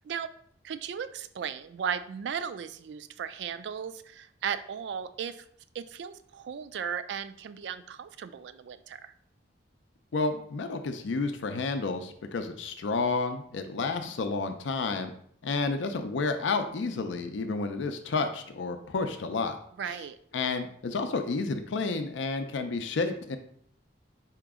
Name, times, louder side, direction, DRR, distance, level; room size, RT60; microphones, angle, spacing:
voice 1, 0.6-5.4 5.7-9.1 19.8-20.2, right 7 dB, 65° right, 12 dB, 0.3 m, -36 dB
voice 2, 10.1-15.1 15.4-19.6 20.3-23.4, left 4 dB, 80° left, 7 dB, 0.4 m, -30 dB
4.9 x 2.9 x 3.5 m, 0.64 s
head